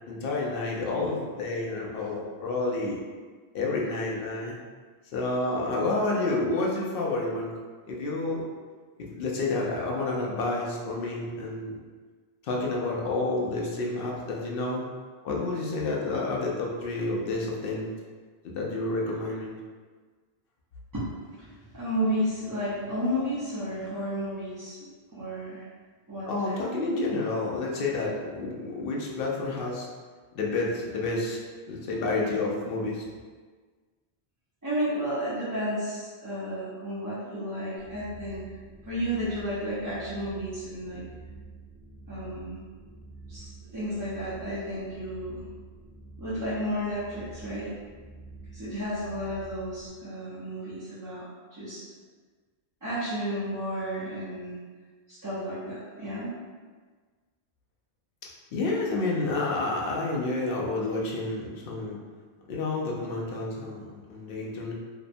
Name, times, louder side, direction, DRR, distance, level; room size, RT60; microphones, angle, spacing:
voice 1, 0.1-3.0 3.5-4.6 5.1-7.6 7.9-8.4 9.0-11.8 12.4-14.8 15.2-17.9 18.4-19.5 26.3-29.9 30.3-31.4 31.7-33.1 58.5-62.0 62.5-64.7, left 2 dB, 65° left, -2 dB, 0.7 m, -29 dB
voice 2, 20.9-21.5 21.7-25.7 26.1-26.6 34.6-38.5 38.8-41.0 42.1-42.6 43.3-45.4 46.2-47.7 48.5-51.8 52.8-54.6 55.1-56.3, equal, 25° right, -13 dB, 0.5 m, -32 dB
sound 1, 37.8-49.9, right 3 dB, 80° right, 0.9 m, -47 dB
2.7 x 2.1 x 2.5 m, 1.5 s
omnidirectional pair, 1.1 m